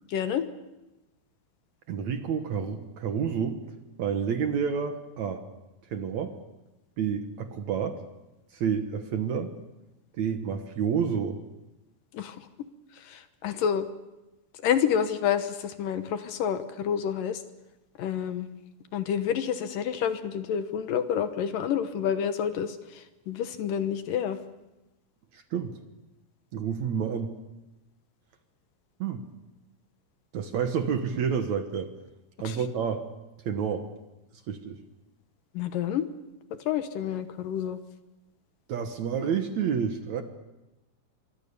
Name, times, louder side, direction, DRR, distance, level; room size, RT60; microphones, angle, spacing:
voice 1, 0.1-0.5 12.1-12.4 13.1-13.9 14.6-17.4 18.0-18.5 18.9-22.8 23.3-24.4 32.4-32.6 35.6-36.1 36.7-37.8, left 8 dB, 70° left, 9 dB, 2.6 m, -28 dB
voice 2, 1.9-3.6 4.0-5.5 5.9-6.3 7.0-8.0 8.5-9.5 10.2-11.4 25.3-25.7 26.5-27.3 29.0-29.2 30.3-31.9 32.4-33.1 33.4-33.9 34.5-34.8 38.7-40.2, right 7 dB, 60° right, 7 dB, 2.2 m, -29 dB
25.5 x 23.5 x 6.9 m, 0.98 s
omnidirectional pair, 4.3 m